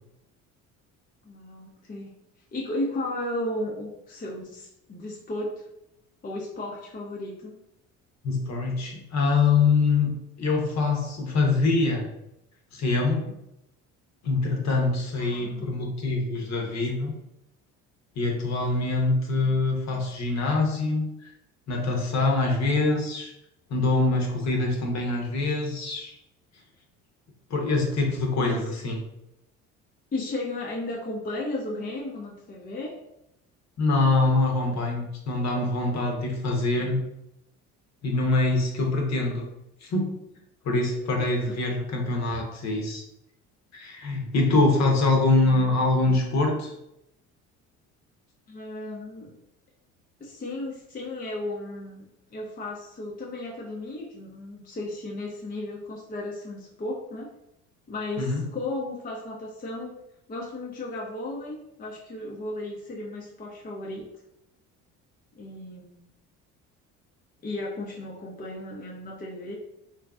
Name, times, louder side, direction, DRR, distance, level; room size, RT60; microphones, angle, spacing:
voice 1, 1.2-2.1 2.5-5.7 6.2-7.5 15.2-15.7 28.4-28.6 30.1-32.9 41.5-41.6 48.5-49.4 50.2-52.0 52.3-57.3 57.9-59.9 60.3-64.1 65.4-66.0 67.4-69.6, left 1 dB, 25° left, -2 dB, 0.6 m, -34 dB
voice 2, 8.2-12.0 12.7-13.2 14.2-17.2 18.2-21.3 21.7-23.3 23.7-26.1 27.5-29.0 33.8-37.0 38.0-39.4 39.8-40.2 40.6-43.0 43.7-46.7 58.2-58.5, left 3 dB, 45° left, 1 dB, 0.9 m, -24 dB
3.0 x 2.5 x 2.3 m, 0.84 s
hypercardioid pair, 60°, 38 cm